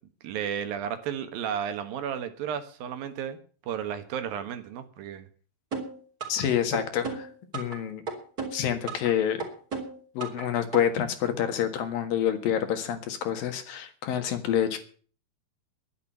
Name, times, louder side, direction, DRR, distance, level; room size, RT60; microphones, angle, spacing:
voice 1, 0.2-3.4 3.6-5.3, right 8 dB, 70° right, 9 dB, 3.0 m, -33 dB
sound 1, 5.7-6.4 6.7-7.8 8.1-9.1 9.4-10.4 10.7-10.8, right 4 dB, 25° right, 3.6 m, -34 dB
voice 2, 6.3-7.3 7.5-8.0 8.5-9.4 10.1-14.8, left 9 dB, 70° left, 8 dB, 3.2 m, -27 dB
11.0 x 10.5 x 8.9 m, 0.43 s
omnidirectional pair, 4.4 m